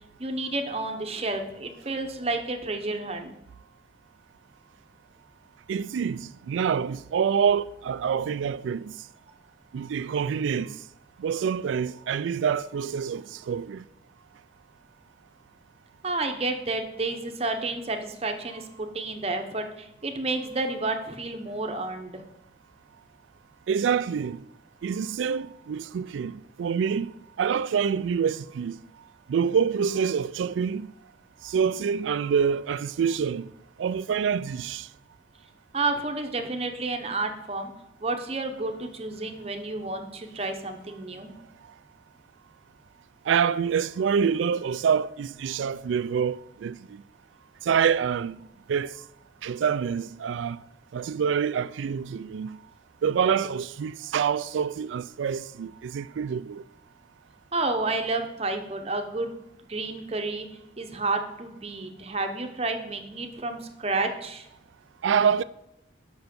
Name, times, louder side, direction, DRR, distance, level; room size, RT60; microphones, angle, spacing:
voice 1, 0.2-3.4 16.0-22.2 35.7-37.7 38.0-41.3 57.5-59.3 59.7-60.5 60.8-64.5, right 3 dB, 30° right, 0.8 m, -30 dB
voice 2, 5.7-8.9 9.7-10.8 11.2-13.8 23.7-24.4 24.8-27.1 27.4-28.8 29.3-30.9 31.4-33.5 33.8-34.9 43.3-47.0 47.6-48.4 48.7-49.0 49.4-50.6 50.9-52.6 53.0-56.6 65.0-65.4, right 7 dB, 85° right, 0.3 m, -26 dB
8.0 x 5.6 x 5.2 m
head